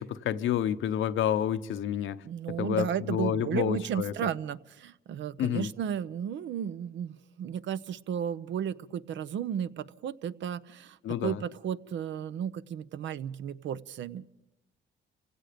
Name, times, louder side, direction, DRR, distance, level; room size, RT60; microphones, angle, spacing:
voice 1, 0.0-2.2 2.6-4.1 5.4-5.7 11.0-11.4, left 10 dB, 75° left, 0.9 m, -29 dB
voice 2, 2.2-14.3, right 8 dB, 70° right, 0.7 m, -34 dB
29.5 x 17.0 x 5.2 m
cardioid pair, 90°, 20 cm